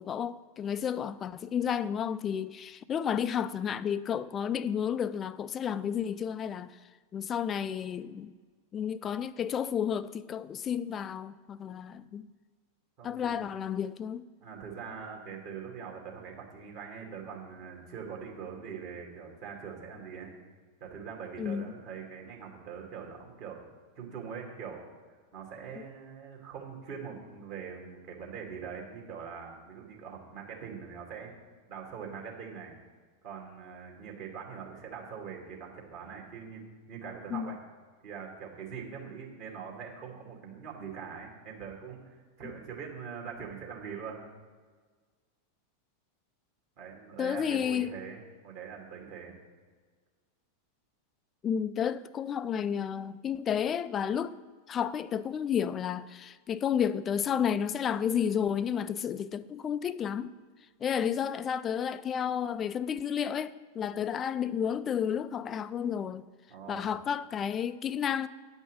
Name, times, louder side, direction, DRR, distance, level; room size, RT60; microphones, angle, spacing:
voice 1, 0.0-6.8 7.1-8.3 8.7-12.3 13.0-14.2 21.4-21.7 37.3-37.6 47.2-47.9 51.4-54.3 54.7-60.3 60.8-66.2 66.7-68.3, left 8 dB, 25° left, 0.4 m, -31 dB
voice 2, 13.0-13.4 14.4-20.3 20.8-23.6 24.0-24.8 25.3-31.3 31.7-32.8 33.2-37.6 38.0-44.2 46.8-49.4 66.5-66.9, right 6 dB, 45° right, 2.4 m, -43 dB
9.7 x 5.4 x 8.1 m
figure-of-eight pair, 90°, 0 cm